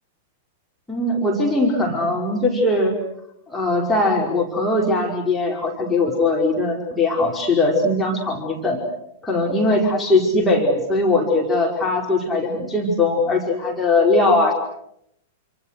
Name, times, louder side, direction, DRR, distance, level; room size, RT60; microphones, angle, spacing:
voice 1, 0.9-3.0 3.5-8.8 9.2-14.5, left 2 dB, 10° left, -1 dB, 5.1 m, -20 dB
28.5 x 27.5 x 6.6 m, 0.76 s
figure-of-eight pair, 100°, 0 cm